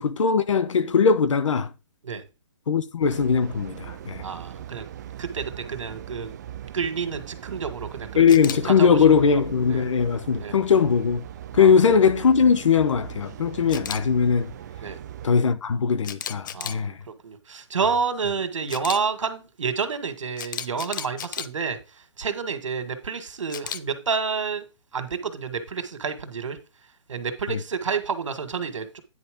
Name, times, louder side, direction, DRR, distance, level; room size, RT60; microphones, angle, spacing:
voice 1, 0.0-1.7 2.7-4.2 8.2-11.2 11.5-14.5 15.2-17.0 27.5-27.6, left 6 dB, 80° left, 1.0 m, -20 dB
sound 1, 3.0-15.3, right 11 dB, 35° right, 0.6 m, -40 dB
voice 2, 4.2-4.8 5.2-6.3 6.7-8.2 8.8-9.4 9.7-9.8 10.4-10.6 11.6-11.8 14.8-15.0 16.5-16.9 17.2-21.8 22.2-24.7 24.9-26.6 27.1-29.0, right 5 dB, 90° right, 1.8 m, -29 dB
Camera, 8.3-8.6 13.7-14.0 16.0-16.8 18.7-19.0 20.4-21.5 23.5-23.8, left 9 dB, 40° left, 0.6 m, -33 dB
9.8 x 4.1 x 5.1 m
hypercardioid pair, 165°, 16 cm